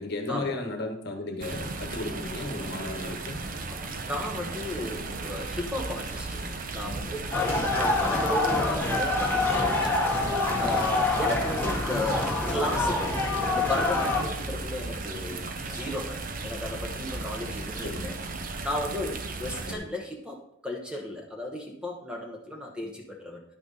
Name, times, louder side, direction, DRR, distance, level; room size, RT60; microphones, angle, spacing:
voice 1, 0.0-3.4 8.6-8.7 11.6-11.9 17.8-18.1 19.7-19.9, left 2 dB, 55° left, 3 dB, 1.3 m, -34 dB
sound 1, 1.4-19.7, right 3 dB, 45° right, 0.7 m, -35 dB
voice 2, 3.7-18.2 18.6-23.4, left 1 dB, 5° right, 0 dB, 1.1 m, -35 dB
sound 2, 7.3-14.2, left 2 dB, 10° left, 1.6 m, -26 dB
10.5 x 5.9 x 4.1 m, 0.72 s
head